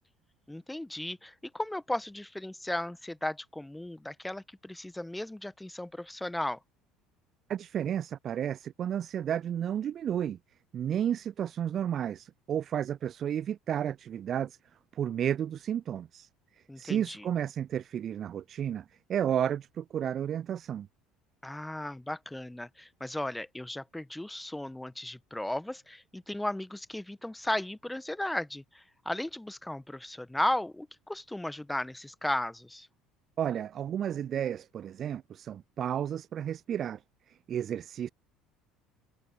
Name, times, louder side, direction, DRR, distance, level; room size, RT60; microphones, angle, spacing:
voice 1, 0.5-6.6 16.7-17.3 21.4-32.9, left 1 dB, 5° left, 1.4 m, -35 dB
voice 2, 7.5-10.4 10.7-14.6 14.9-16.3 16.8-18.8 19.1-20.9 33.4-37.0 37.3-38.1, right 9 dB, 40° right, 0.3 m, -32 dB
figure-of-eight pair, 60°, 0 cm